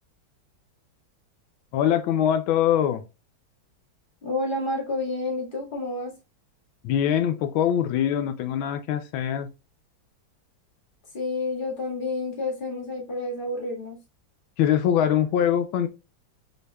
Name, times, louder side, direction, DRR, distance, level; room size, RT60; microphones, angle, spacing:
voice 1, 1.7-3.0 6.8-9.5 14.6-15.9, left 9 dB, 85° left, 9 dB, 1.3 m, -23 dB
voice 2, 4.2-6.1 11.1-14.0, left 2 dB, 25° left, -1 dB, 1.7 m, -29 dB
6.3 x 3.3 x 2.2 m, 0.28 s
omnidirectional pair, 2.2 m